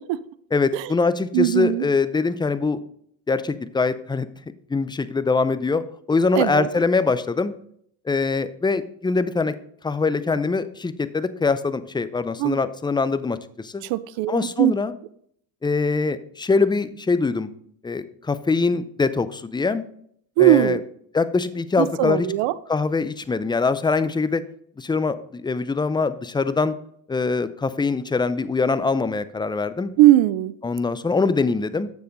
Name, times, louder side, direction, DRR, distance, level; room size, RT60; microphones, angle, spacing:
voice 1, 0.5-2.8 3.3-4.3 4.7-7.5 8.1-9.5 9.8-13.8 14.3-14.9 15.6-17.5 17.8-19.8 20.4-20.8 21.1-22.3 22.7-24.4 24.8-26.7 27.1-29.9 30.6-31.9, left 4 dB, 10° left, 13 dB, 0.4 m, -23 dB
voice 2, 1.3-1.9 6.4-6.7 12.4-12.6 13.8-14.7 20.4-20.8 21.8-22.5 30.0-30.5, right 15 dB, 75° right, 18 dB, 0.6 m, -19 dB
7.0 x 6.9 x 3.9 m, 0.66 s
supercardioid pair, 80°, 46 cm